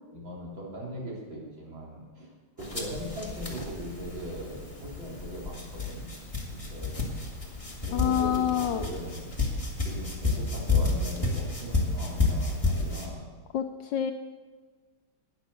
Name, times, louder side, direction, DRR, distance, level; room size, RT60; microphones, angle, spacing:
voice 1, 0.1-2.3 2.6-6.1 6.5-7.1 7.9-9.4 9.8-13.2, equal, 60° right, -4 dB, 4.3 m, -39 dB
sound 1, 2.6-13.1, left 3 dB, 15° left, 1.8 m, -31 dB
voice 2, 7.9-8.8 13.5-13.7 13.9-14.1, left 10 dB, 75° left, 7 dB, 1.1 m, -26 dB
11.5 x 10.0 x 7.0 m, 1.4 s
omnidirectional pair, 2.4 m